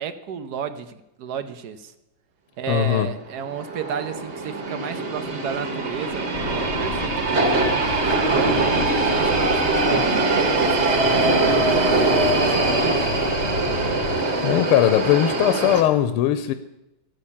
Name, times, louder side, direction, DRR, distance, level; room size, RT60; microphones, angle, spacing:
voice 1, 0.0-1.9 2.6-7.8 8.1-10.2 10.5-13.1, right 7 dB, 65° right, 11 dB, 1.0 m, -33 dB
voice 2, 2.7-3.1 14.4-16.5, left 12 dB, 85° left, 10 dB, 1.5 m, -19 dB
sound 1, 3.2-15.8, right 2 dB, 35° right, 1.5 m, -22 dB
sound 2, 6.3-14.2, left 4 dB, 50° left, 1.2 m, -34 dB
14.5 x 6.5 x 8.5 m, 0.94 s
omnidirectional pair, 2.3 m